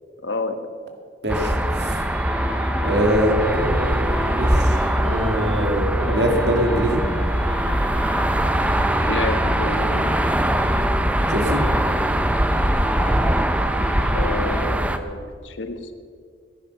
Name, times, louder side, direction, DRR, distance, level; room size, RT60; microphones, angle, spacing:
voice 1, 0.2-0.6 9.0-10.1 14.1-15.9, left 2 dB, 85° left, 7 dB, 1.2 m, -29 dB
voice 2, 1.2-2.0 2.8-7.0 11.3-11.6, equal, 65° right, 3 dB, 2.3 m, -23 dB
sound 1, 1.3-15.0, right 1 dB, 5° right, 0.6 m, -22 dB
sound 2, 1.5-5.7 6.0-10.9 11.2-14.7, equal, 10° left, 2.0 m, -33 dB
15.0 x 10.5 x 6.7 m, 2.1 s
head